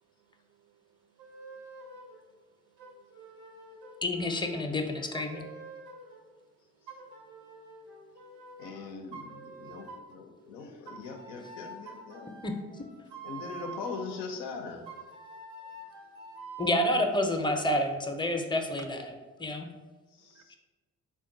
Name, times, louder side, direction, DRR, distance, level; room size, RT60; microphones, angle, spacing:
voice 1, 0.6-1.0 1.3-1.7 1.9-2.0 2.8-4.0 8.3-8.6 16.3-16.5 20.3-20.4, right 8 dB, 45° right, 8 dB, 0.4 m, -66 dB
sound 1, 1.2-2.2 2.8-6.2 6.9-8.7 9.1-10.2 10.9-14.2 14.9-17.1, right 3 dB, 85° right, 0.8 m, -46 dB
voice 2, 4.0-5.4 12.4-12.5 16.6-19.1 19.4-19.7 20.5-20.6, left 1 dB, 15° left, 4 dB, 0.6 m, -29 dB
voice 3, 8.6-12.3 13.2-14.9 15.6-15.7 20.1-20.6, left 4 dB, 80° left, 3 dB, 0.6 m, -41 dB
3.6 x 2.3 x 3.8 m, 1.3 s
hypercardioid pair, 45°, 36 cm